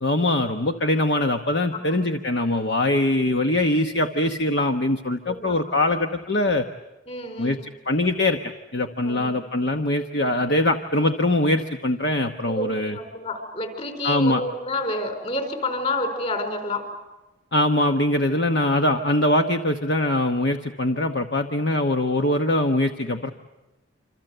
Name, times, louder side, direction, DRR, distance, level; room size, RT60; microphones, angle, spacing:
voice 1, 0.0-6.7 7.4-8.4 8.7-13.0 14.0-14.4 17.5-23.3, left 1 dB, 55° left, 5 dB, 1.1 m, -22 dB
voice 2, 1.7-2.1 5.3-5.6 7.1-7.6 9.0-9.3 12.4-16.8, left 2 dB, 35° left, 5 dB, 4.9 m, -29 dB
27.5 x 26.5 x 7.9 m, 1.1 s
head